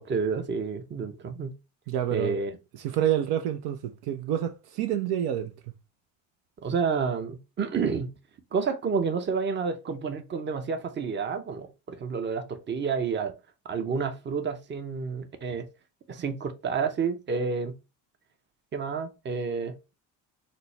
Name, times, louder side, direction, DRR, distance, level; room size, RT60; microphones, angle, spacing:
voice 1, 0.0-1.5 2.1-2.6 6.6-8.1 8.5-13.3 13.6-15.7 16.1-17.8 18.7-19.7, right 5 dB, 25° right, 0.7 m, -29 dB
voice 2, 1.9-2.4 2.8-5.5, right 10 dB, 65° right, 0.6 m, -28 dB
4.2 x 2.0 x 3.1 m
supercardioid pair, 75°, 41 cm